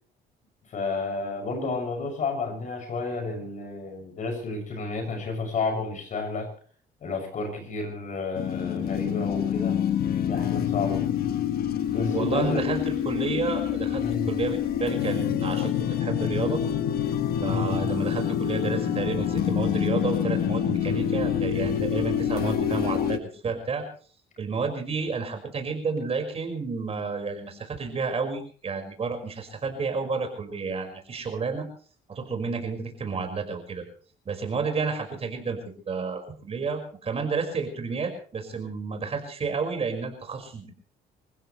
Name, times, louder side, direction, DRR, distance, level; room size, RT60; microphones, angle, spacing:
voice 1, 0.7-6.5 7.0-9.8 10.3-11.0 11.9-12.7 13.9-14.3 17.4-17.9, left 3 dB, 50° left, 4 dB, 7.1 m, -31 dB
sound 1, 8.4-23.2, left 9 dB, 65° left, 1.3 m, -26 dB
voice 2, 12.1-16.6 17.4-23.8 24.4-31.7 32.1-33.8 34.3-40.7, right 4 dB, 35° right, 4 dB, 5.5 m, -31 dB
27.5 x 16.0 x 3.3 m, 0.43 s
cardioid pair, 110°, 17 cm